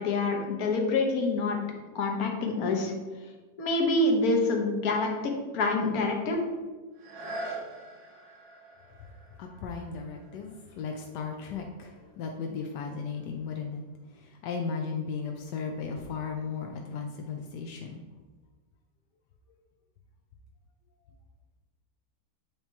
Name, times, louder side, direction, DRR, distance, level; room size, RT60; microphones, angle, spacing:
voice 1, 0.0-1.6 1.9-2.9 3.6-6.4, left 2 dB, 60° left, 1 dB, 1.4 m, -26 dB
sound 1, 6.9-12.6 13.2-13.3, right 2 dB, 65° right, 1.6 m, -44 dB
voice 2, 9.4-13.8 14.1-18.0, left 5 dB, 80° left, 2 dB, 1.2 m, -36 dB
8.5 x 2.9 x 4.4 m, 1.3 s
omnidirectional pair, 1.8 m